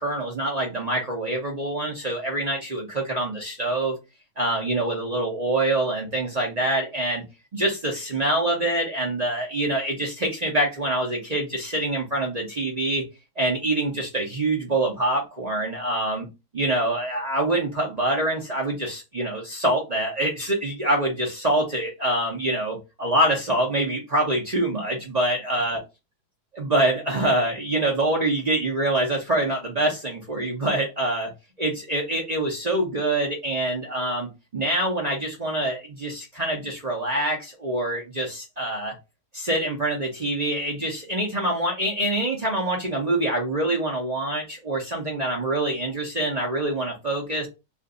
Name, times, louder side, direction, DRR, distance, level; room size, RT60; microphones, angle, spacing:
voice 1, 0.0-3.9 4.4-7.2 7.5-13.0 13.4-16.3 16.5-25.8 26.6-31.3 31.6-39.0 39.3-47.5, right 1 dB, 40° right, -2 dB, 0.6 m, -25 dB
2.5 x 2.5 x 3.7 m, 0.25 s
omnidirectional pair, 1.7 m